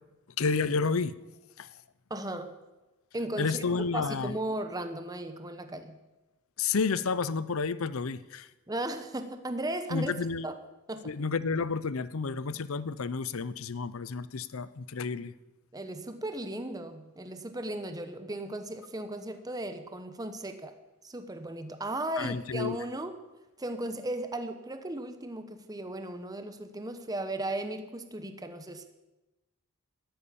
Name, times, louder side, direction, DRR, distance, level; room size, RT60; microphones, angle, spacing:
voice 1, 0.4-1.1 1.6-1.7 3.4-4.4 6.6-8.5 9.9-10.5 11.0-15.3 22.2-22.8, left 4 dB, 70° left, 16 dB, 0.7 m, -30 dB
voice 2, 2.1-2.6 3.1-3.6 3.9-6.0 8.7-10.2 10.4-10.6 10.9-11.2 15.7-20.7 21.0-23.2 23.6-28.9, right 1 dB, 15° right, 8 dB, 0.9 m, -36 dB
13.0 x 12.5 x 7.0 m, 1.1 s
head